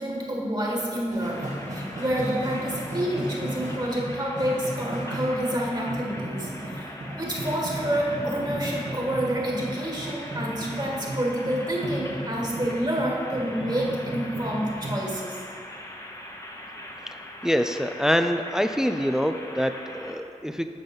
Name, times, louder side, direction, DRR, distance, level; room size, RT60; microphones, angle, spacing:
voice 1, 0.0-15.4, right 1 dB, 35° right, -3 dB, 1.7 m, -28 dB
sound 1, 1.1-15.1, right 1 dB, 70° right, 1.7 m, -35 dB
sound 2, 1.2-20.1, left 1 dB, 25° left, 0.9 m, -41 dB
voice 2, 17.4-20.7, equal, 5° right, 8 dB, 0.4 m, -25 dB
8.9 x 4.0 x 5.4 m, 2.2 s
cardioid pair, 45°, 13 cm